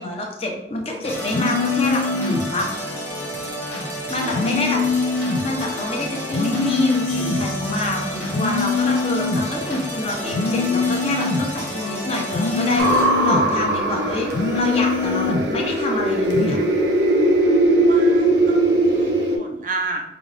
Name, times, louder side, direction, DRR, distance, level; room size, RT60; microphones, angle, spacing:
voice 1, 0.0-2.7 4.1-4.8 5.4-16.6, left 1 dB, 35° left, 0 dB, 0.7 m, -26 dB
sound 1, 1.0-13.0, equal, 10° left, 1.0 m, -30 dB
sound 2, 1.3-2.5 4.3-5.5 6.3-7.5 8.3-9.5 10.3-11.5 12.3-13.5 14.3-15.5 16.3-16.6, left 4 dB, 75° left, 0.4 m, -23 dB
voice 2, 4.2-4.7 6.3-6.4 17.9-20.0, right 3 dB, 45° right, 4 dB, 0.4 m, -32 dB
sound 3, 12.8-19.4, right 1 dB, 80° right, 0.7 m, -19 dB
5.0 x 2.4 x 3.3 m, 0.88 s
head